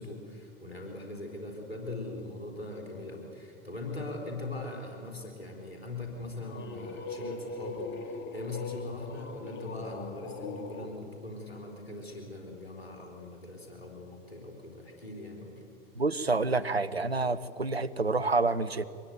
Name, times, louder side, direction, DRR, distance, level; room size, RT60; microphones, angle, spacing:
voice 1, 0.0-15.6, left 2 dB, 80° left, 2 dB, 4.0 m, -41 dB
sound 1, 6.0-10.9, left 3 dB, 40° left, 2.6 m, -40 dB
voice 2, 15.9-18.9, right 3 dB, 85° right, 14 dB, 0.9 m, -28 dB
24.0 x 20.0 x 9.0 m, 2.5 s
figure-of-eight pair, 75°, 30 cm